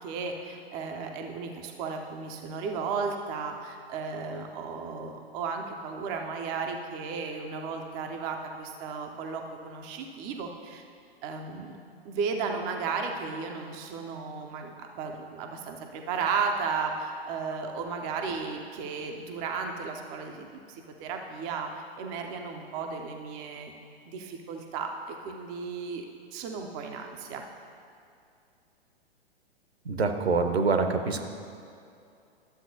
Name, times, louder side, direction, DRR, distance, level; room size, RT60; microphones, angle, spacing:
voice 1, 0.0-10.8 11.2-11.8 12.0-21.7 22.0-23.7 24.1-26.1 26.3-27.4, right 5 dB, 15° right, 3 dB, 0.3 m, -34 dB
voice 2, 29.8-31.2, right 4 dB, 75° right, 6 dB, 0.8 m, -25 dB
12.0 x 7.5 x 2.7 m, 2.5 s
figure-of-eight pair, 110°, 32 cm